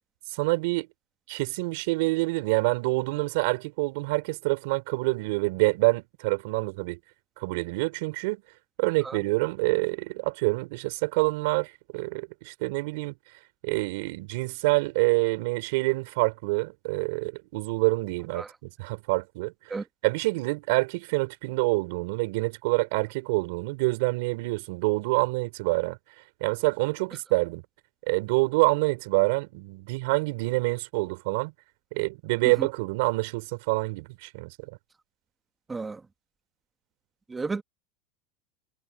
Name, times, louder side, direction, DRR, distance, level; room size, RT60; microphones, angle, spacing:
voice 1, 0.3-0.9 1.3-7.0 7.4-8.4 8.8-13.1 13.6-26.0 26.4-27.6 28.1-31.5 31.9-34.7, right 25 dB, 65° right, 4.0 m, -27 dB
voice 2, 35.7-36.0 37.3-37.6, right 4 dB, 15° right, 1.8 m, -32 dB
supercardioid pair, 130°, 0 cm